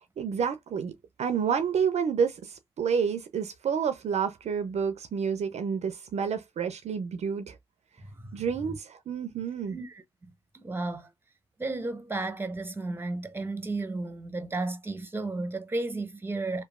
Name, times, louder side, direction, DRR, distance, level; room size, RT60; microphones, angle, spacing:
voice 1, 0.2-7.6 8.3-9.8, right 6 dB, 55° right, 0.5 m, -29 dB
voice 2, 9.7-11.1 11.6-16.6, right 2 dB, 15° right, 0.8 m, -33 dB
3.0 x 2.2 x 2.3 m
hypercardioid pair, 45°, 13 cm